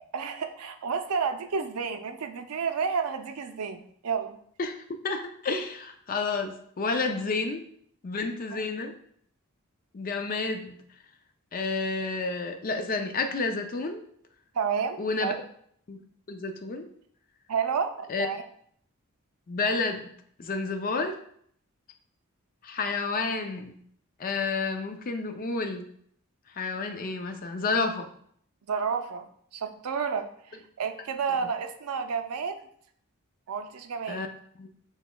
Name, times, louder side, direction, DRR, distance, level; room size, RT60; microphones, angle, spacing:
voice 1, 0.1-4.4 8.5-8.6 14.5-15.4 17.5-18.4 28.7-29.3 29.5-32.6 33.5-34.2, right 6 dB, 90° right, 8 dB, 0.5 m, -30 dB
voice 2, 4.6-7.7 8.0-8.9 9.9-10.8 11.5-14.0 15.0-15.3 15.9-16.0 16.3-16.9 18.1-18.3 19.5-20.1 20.4-21.2 22.6-23.8 24.2-25.9 26.5-28.1 34.1-34.3 34.6-34.7, left 3 dB, 40° left, 7 dB, 0.4 m, -30 dB
6.1 x 3.4 x 2.2 m, 0.65 s
head